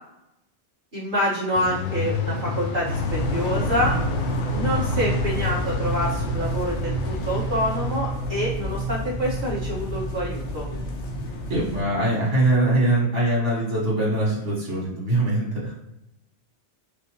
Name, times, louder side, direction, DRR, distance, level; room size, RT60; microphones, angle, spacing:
voice 1, 0.9-3.9 4.5-10.7, equal, 45° right, -8 dB, 1.8 m, -27 dB
sound 1, 1.5-8.0, left 4 dB, 60° left, 0.6 m, -32 dB
sound 2, 2.8-11.8, left 3 dB, 85° left, 1.0 m, -30 dB
sound 3, 3.1-12.7, right 4 dB, 60° right, 1.1 m, -32 dB
voice 2, 11.5-15.7, right 1 dB, 80° right, -5 dB, 2.0 m, -22 dB
4.9 x 2.2 x 3.0 m, 0.86 s
omnidirectional pair, 1.2 m